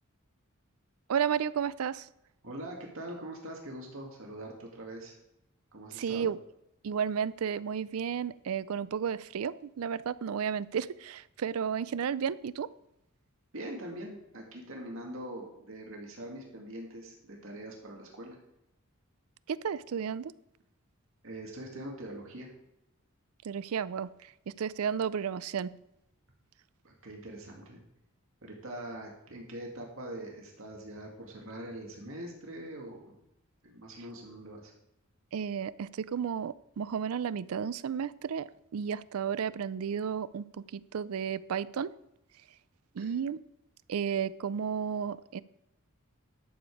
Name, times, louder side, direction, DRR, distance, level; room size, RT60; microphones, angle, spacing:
voice 1, 1.1-2.1 6.0-6.4 6.8-12.7 19.5-20.3 23.4-24.1 24.5-25.7 35.3-41.9 43.0-43.4 43.9-45.4, right 7 dB, 85° right, 0.4 m, -33 dB
voice 2, 2.4-5.2 5.7-6.3 13.5-18.4 21.2-22.5 26.8-27.8 28.4-33.1 33.6-34.7 43.0-43.1, right 1 dB, 65° right, 2.2 m, -43 dB
12.0 x 7.1 x 4.8 m
head